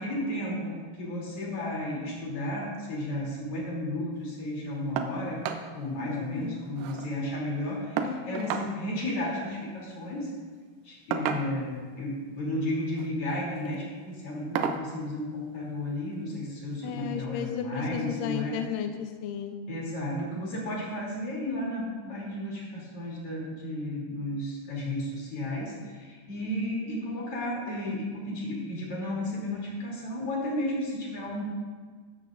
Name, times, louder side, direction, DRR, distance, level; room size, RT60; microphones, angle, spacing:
voice 1, 0.0-5.4 5.7-10.3 10.8-18.6 19.7-31.4, left 1 dB, 35° left, -4 dB, 3.7 m, -33 dB
sound 1, 5.0-5.2 5.4-5.7 6.0-6.1 6.4-7.1 8.0-8.7 9.9-10.1 11.1-11.8 12.8-13.1 13.6-13.8 14.6-14.9 16.1-16.2 16.7-16.8, right 7 dB, 80° right, 1.9 m, -32 dB
voice 2, 6.0-6.6 8.0-8.6 16.8-19.6, left 9 dB, 90° left, 6 dB, 1.9 m, -34 dB
14.5 x 13.0 x 2.6 m, 1.5 s
omnidirectional pair, 4.8 m